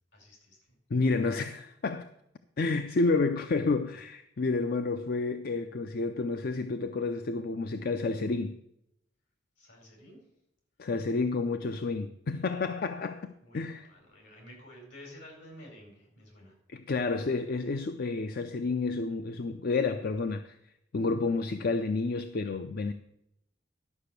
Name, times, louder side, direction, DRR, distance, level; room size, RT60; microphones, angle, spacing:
voice 1, 0.1-0.8 9.6-10.2 13.4-16.6, left 1 dB, 75° left, 4.6 m, -51 dB
voice 2, 0.9-2.1 2.6-8.6 10.8-13.9 16.7-20.6 20.9-22.9, left 3 dB, 55° left, 0.5 m, -30 dB
12.0 x 5.8 x 6.7 m
head